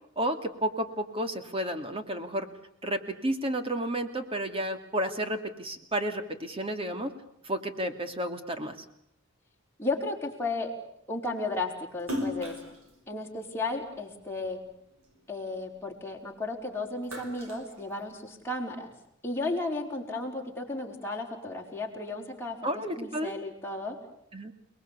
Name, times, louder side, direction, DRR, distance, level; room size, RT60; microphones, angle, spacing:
voice 1, 0.2-2.5 2.8-7.1 7.4-8.8 22.6-23.3 24.3-24.5, right 1 dB, 25° right, 7 dB, 2.4 m, -31 dB
voice 2, 9.8-10.7 11.1-12.6 13.1-14.6 15.3-18.9 19.2-24.0, left 2 dB, 10° left, -1 dB, 4.9 m, -34 dB
Splash splatter, 12.0-14.5 15.0-16.5 16.8-18.5, left 1 dB, 80° right, 5.7 m, -38 dB
29.5 x 20.5 x 8.5 m, 0.74 s
head